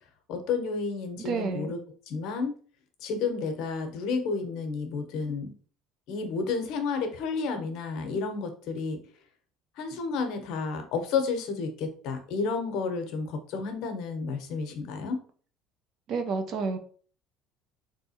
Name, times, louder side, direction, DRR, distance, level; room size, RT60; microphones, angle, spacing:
voice 1, 0.3-1.8 2.1-2.5 3.0-5.5 6.1-9.0 9.8-15.2, left 4 dB, 65° left, 6 dB, 0.8 m, -31 dB
voice 2, 1.2-1.7 16.1-16.8, right 4 dB, 50° right, 7 dB, 0.6 m, -30 dB
3.5 x 2.7 x 2.7 m, 0.43 s
cardioid pair, 130°, 0 cm